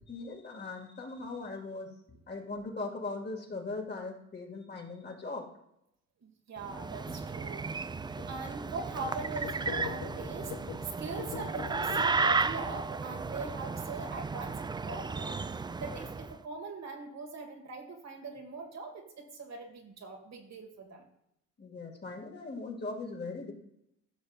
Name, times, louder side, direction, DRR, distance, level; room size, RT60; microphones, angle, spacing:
voice 1, 0.1-1.9 2.3-5.5 21.6-23.5, left 3 dB, 35° left, 0 dB, 2.3 m, -39 dB
voice 2, 6.2-7.7 8.2-10.5 10.8-21.1, right 3 dB, 60° right, 2 dB, 2.1 m, -41 dB
sound 1, 6.6-16.3, right 4 dB, 15° right, 0.3 m, -34 dB
sound 2, 7.1-7.3 7.8-7.9 8.2-8.3 8.7-12.0, left 12 dB, 85° left, 0.5 m, -44 dB
14.5 x 6.5 x 2.5 m, 0.79 s
cardioid pair, 90°, 30 cm